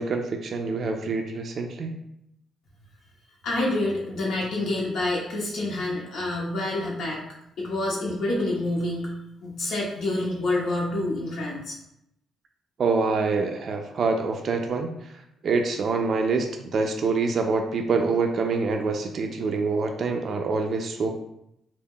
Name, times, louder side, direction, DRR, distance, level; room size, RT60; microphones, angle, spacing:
voice 1, 0.0-1.9 12.8-14.9 15.4-21.1, right 4 dB, 55° right, 4 dB, 0.3 m, -25 dB
voice 2, 3.4-7.2 7.6-9.1 9.4-11.8, left 2 dB, 70° left, -4 dB, 0.7 m, -27 dB
2.3 x 2.0 x 3.5 m, 0.80 s
cardioid pair, 90°, 0 cm